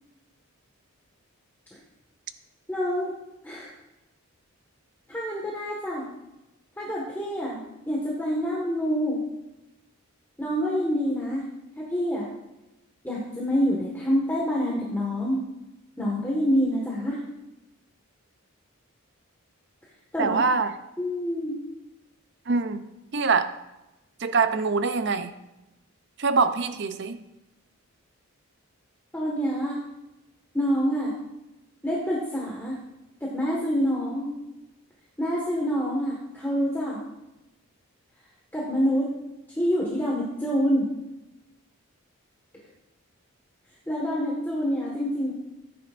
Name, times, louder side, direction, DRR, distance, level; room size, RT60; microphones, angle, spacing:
voice 1, 2.7-3.1 3.4-3.7 5.1-6.1 6.8-9.2 10.4-11.4 11.8-12.3 13.0-15.4 16.0-17.2 20.1-20.4 21.0-21.5 29.1-29.8 30.5-31.2 31.8-32.7 33.2-34.3 35.2-37.0 38.5-39.1 39.6-40.9 43.9-45.3, equal, 10° left, -5 dB, 1.6 m, -26 dB
voice 2, 20.2-20.8 22.5-23.5 24.2-25.3 26.2-27.2, right 4 dB, 50° right, 10 dB, 0.6 m, -24 dB
15.0 x 9.5 x 2.6 m, 0.96 s
head